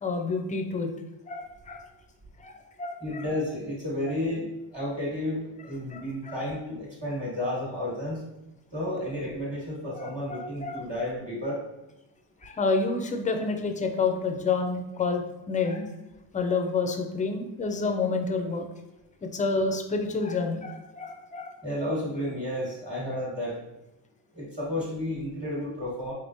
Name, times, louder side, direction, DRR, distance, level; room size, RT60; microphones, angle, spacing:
voice 1, 0.0-0.9 1.3-1.8 2.4-3.2 5.9-6.4 10.0-10.8 12.4-15.9 16.3-18.7 19.2-21.5, left 4 dB, 20° left, 4 dB, 0.4 m, -29 dB
voice 2, 3.0-8.2 8.7-11.6 21.6-23.6 24.3-26.1, left 1 dB, 15° right, -6 dB, 1.2 m, -32 dB
4.1 x 3.5 x 2.6 m, 0.94 s
cardioid pair, 130°, 42 cm